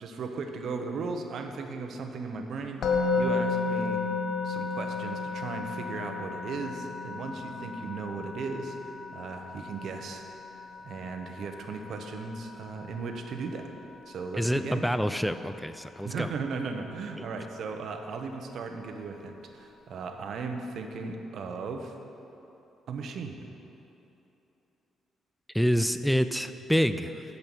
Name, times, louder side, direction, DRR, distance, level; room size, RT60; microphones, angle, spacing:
voice 1, 0.0-2.8 3.1-4.0 4.4-8.8 9.1-10.3 10.8-13.7 14.1-14.8 16.0-22.0 22.9-23.4, right 4 dB, 65° right, 5 dB, 0.9 m, -36 dB
Musical instrument, 2.8-13.9, left 4 dB, 60° left, 1.0 m, -33 dB
voice 2, 14.3-16.3 25.5-27.2, equal, ahead, 11 dB, 0.4 m, -27 dB
10.5 x 5.4 x 7.2 m, 2.9 s
cardioid pair, 90°, 0 cm